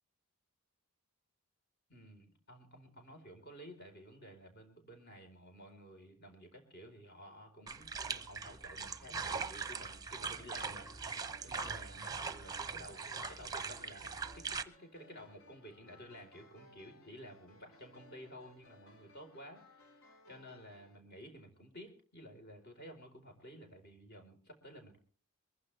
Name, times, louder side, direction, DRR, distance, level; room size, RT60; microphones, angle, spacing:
voice 1, 1.9-25.0, equal, 45° left, 4 dB, 4.2 m, -53 dB
sound 1, 7.7-14.6, right 5 dB, 15° right, 0.8 m, -41 dB
sound 2, 9.9-21.0, left 1 dB, 70° left, 2.6 m, -62 dB
23.0 x 15.0 x 3.4 m, 0.41 s
head